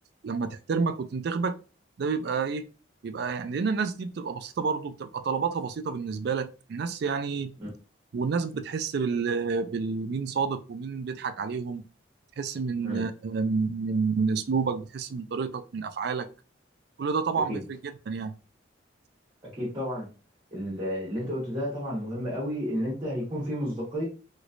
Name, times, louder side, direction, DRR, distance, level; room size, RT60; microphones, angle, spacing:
voice 1, 0.2-1.6 2.0-2.6 3.0-7.5 8.1-11.8 12.4-16.3 17.0-18.3, right 5 dB, 60° right, 0.3 m, -29 dB
voice 2, 19.5-20.1 20.5-24.0, equal, 25° right, 1.4 m, -31 dB
3.1 x 3.0 x 2.6 m
head